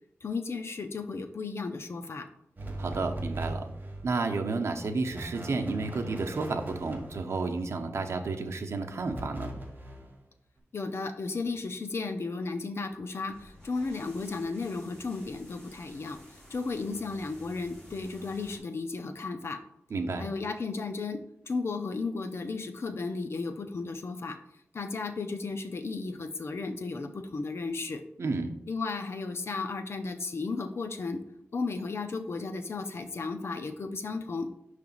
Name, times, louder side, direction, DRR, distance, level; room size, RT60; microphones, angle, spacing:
voice 1, 0.2-2.3 10.7-16.2 16.5-19.6 20.2-21.2 21.5-24.4 24.7-28.0 28.7-31.2 31.5-34.5, left 4 dB, 60° left, 7 dB, 0.6 m, -34 dB
sound 1, 2.6-4.1 5.0-7.6 9.0-10.2, right 1 dB, 40° right, 1.3 m, -39 dB
voice 2, 2.8-3.6 4.0-9.5 19.9-20.3 28.2-28.5, right 3 dB, 75° right, 4 dB, 0.7 m, -31 dB
sound 2, 13.3-18.6, equal, 10° left, 2.5 m, -53 dB
5.8 x 3.3 x 5.4 m, 0.77 s
wide cardioid pair, 90°, 5 cm